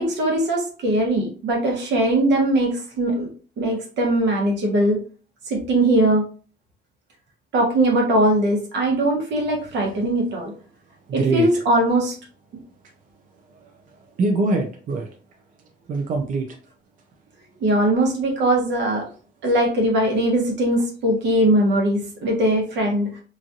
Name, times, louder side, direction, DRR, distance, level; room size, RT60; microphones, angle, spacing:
voice 1, 0.0-3.3 3.6-5.0 5.5-6.2 7.5-10.5 11.1-12.1 17.6-19.1 19.4-23.1, right 1 dB, 80° right, 0 dB, 1.1 m, -20 dB
voice 2, 11.1-11.5 13.5-15.1 15.9-16.6, right 3 dB, 50° right, 2 dB, 0.5 m, -24 dB
3.0 x 2.4 x 2.6 m, 0.40 s
cardioid pair, 145°, 18 cm